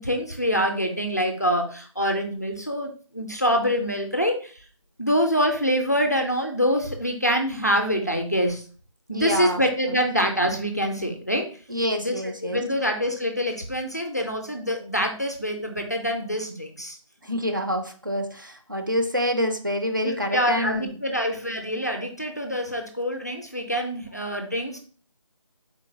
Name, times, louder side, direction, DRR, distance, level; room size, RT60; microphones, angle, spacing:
voice 1, 0.0-4.6 5.0-8.6 9.1-11.4 12.0-12.1 12.4-17.0 20.0-24.8, equal, 30° left, 3 dB, 0.4 m, -25 dB
voice 2, 9.1-9.6 9.9-10.0 11.7-12.6 17.2-20.9, equal, 40° right, 4 dB, 0.4 m, -27 dB
3.8 x 2.2 x 3.6 m, 0.40 s
figure-of-eight pair, 175°, 17 cm